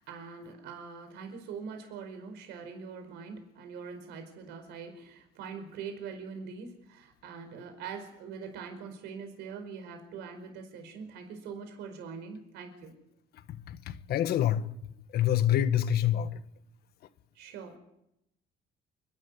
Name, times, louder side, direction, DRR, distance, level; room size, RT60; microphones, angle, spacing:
voice 1, 0.0-12.9 17.3-17.8, right 5 dB, 85° right, 4.7 m, -43 dB
voice 2, 13.5-16.4, left 11 dB, 70° left, 1.5 m, -27 dB
28.5 x 12.5 x 9.6 m
cardioid pair, 110°, 17 cm